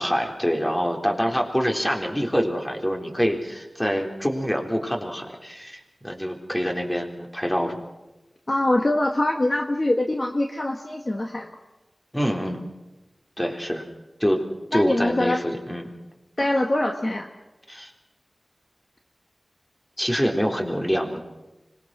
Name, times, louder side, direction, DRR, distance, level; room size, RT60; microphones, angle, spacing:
voice 1, 0.0-7.8 12.1-12.6 13.4-13.8 14.2-14.4 14.7-15.9 17.7-17.9 20.0-21.2, equal, 10° left, 2 dB, 3.9 m, -25 dB
voice 2, 8.5-11.5 14.7-15.4 16.4-17.3, left 1 dB, 45° left, 3 dB, 1.8 m, -23 dB
25.0 x 21.0 x 6.2 m, 1.0 s
wide cardioid pair, 45°, 0 cm